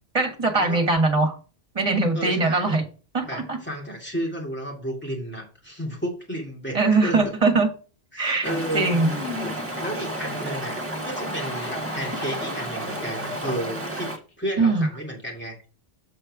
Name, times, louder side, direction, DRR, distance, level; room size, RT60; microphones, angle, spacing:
voice 1, 0.1-1.3 1.7-2.8 3.1-3.6 6.7-7.7 8.2-8.5 8.7-9.1 14.6-14.9, right 3 dB, 35° right, 4 dB, 1.6 m, -21 dB
voice 2, 2.1-2.8 3.3-7.3 8.1-9.5 9.8-14.1 14.4-15.7, equal, 10° left, -2 dB, 2.5 m, -32 dB
Stream, 8.4-14.2, right 1 dB, 15° right, 1.5 m, -31 dB
sound 1, 10.5-10.6 11.1-13.4 14.1-14.3, left 2 dB, 60° left, 1.6 m, -41 dB
7.4 x 4.4 x 4.8 m, 0.37 s
omnidirectional pair, 1.0 m